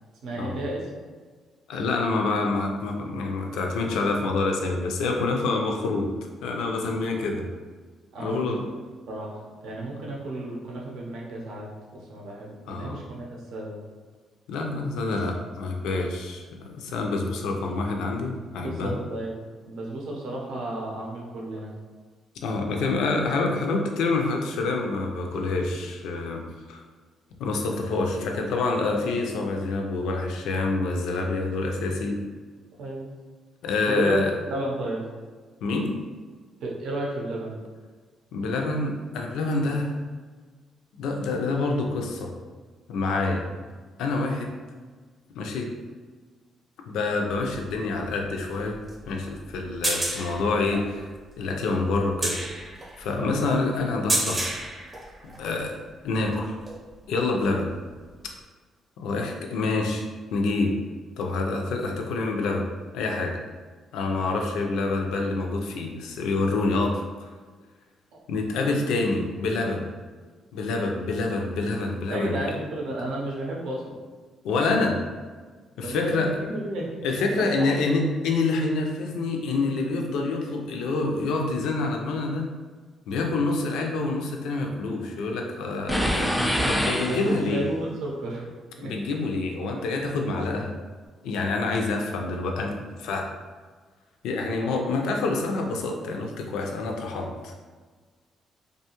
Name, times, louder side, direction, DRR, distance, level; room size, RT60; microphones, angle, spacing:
voice 1, 0.2-0.9 6.8-6.9 8.1-8.6 9.1-13.8 18.6-21.7 32.8-33.1 33.9-35.0 36.6-37.6 53.2-53.4 68.1-68.2 72.1-74.0 75.8-76.9 77.4-78.0 86.9-88.5 88.8-88.9, right 1 dB, 80° right, -2 dB, 0.6 m, -32 dB
voice 2, 1.7-6.1 6.4-7.5 8.2-8.6 12.7-13.0 14.5-19.0 22.4-26.4 26.7-26.8 27.4-32.2 33.6-34.3 35.6-35.9 38.3-39.9 41.0-42.3 42.9-43.5 44.0-44.5 45.4-45.7 46.9-48.8 49.1-51.1 51.4-52.3 53.0-54.4 55.4-56.5 57.1-57.7 59.0-60.1 60.3-60.7 61.2-62.6 62.9-63.4 63.9-67.0 68.3-69.9 70.5-72.6 74.4-75.0 75.8-76.3 77.0-82.5 83.1-86.3 86.7-87.7 88.8-90.7 91.2-92.7 93.0-93.3 94.2-97.5, left 3 dB, 85° left, 2 dB, 0.4 m, -27 dB
sound 1, 47.3-55.6 56.1-56.9 58.2-58.3, right 1 dB, 25° right, 0.7 m, -32 dB
sound 2, 85.9-87.7, equal, ahead, 0.3 m, -25 dB
2.6 x 2.3 x 2.8 m, 1.5 s
cardioid pair, 90°, 0 cm